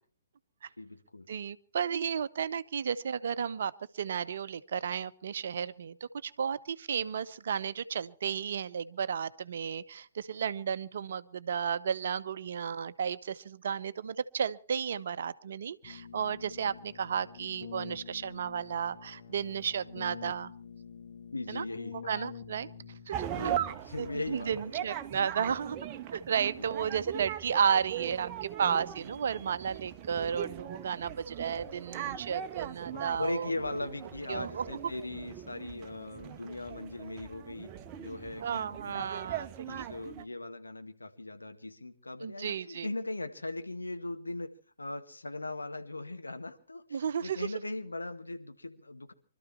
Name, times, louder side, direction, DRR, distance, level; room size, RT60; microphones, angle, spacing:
voice 1, 0.8-1.3 21.3-22.0 23.2-24.9 26.6-26.9 32.9-37.7 38.0-39.1 39.7-44.5 44.8-49.1, left 2 dB, 75° left, 7 dB, 1.8 m, -39 dB
voice 2, 1.3-6.0 6.2-20.5 21.5-21.6 22.0-22.7 23.1-23.3 24.0-25.8 26.1-33.5 34.3-34.6 38.4-39.9 42.2-42.9 46.9-47.5, right 7 dB, 50° right, 14 dB, 0.8 m, -33 dB
Keyboard (musical), 15.8-23.4, left 6 dB, 50° left, 1.5 m, -47 dB
sound 1, 23.1-40.2, right 11 dB, 25° right, 0.9 m, -40 dB
24.5 x 13.0 x 4.4 m, 0.41 s
figure-of-eight pair, 125°, 0 cm